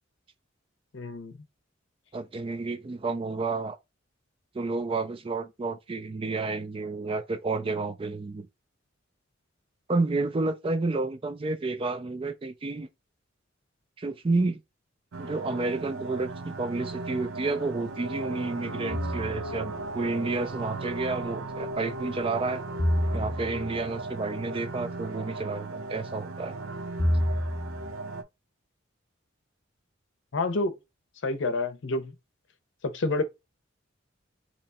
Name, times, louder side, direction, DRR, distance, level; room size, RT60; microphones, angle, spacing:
voice 1, 0.9-1.3 30.3-30.8 31.2-32.1 32.8-33.2, left 2 dB, 65° left, 0.6 m, -28 dB
voice 2, 2.1-3.8 4.5-8.5 9.9-12.9 14.0-14.6 15.2-22.6 23.1-26.6, right 3 dB, 25° right, 0.4 m, -30 dB
sound 1, 15.1-28.2, right 2 dB, 85° right, 0.5 m, -37 dB
sound 2, 18.9-19.7 22.8-23.8 27.0-27.9, equal, 20° left, 0.7 m, -28 dB
2.9 x 2.2 x 4.1 m
head